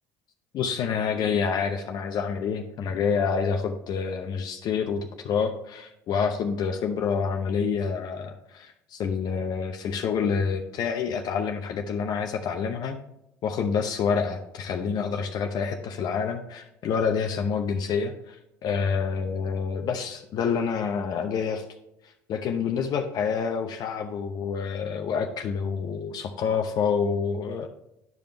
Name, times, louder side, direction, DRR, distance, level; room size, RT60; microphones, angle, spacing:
voice 1, 0.5-13.0 13.4-18.4 18.6-21.6 22.0-27.7, left 6 dB, 55° left, 4 dB, 0.7 m, -27 dB
10.5 x 5.1 x 3.3 m, 0.85 s
hypercardioid pair, 65°, 9 cm